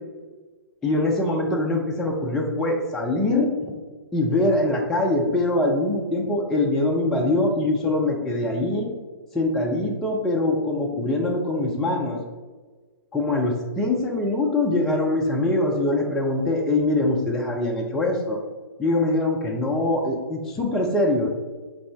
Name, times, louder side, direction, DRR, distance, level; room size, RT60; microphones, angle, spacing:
voice 1, 0.8-3.7 4.1-8.9 9.3-12.2 13.1-18.4 18.8-21.3, left 2 dB, 5° left, -2 dB, 0.3 m, -23 dB
5.1 x 2.7 x 3.3 m, 1.4 s
figure-of-eight pair, 125°, 12 cm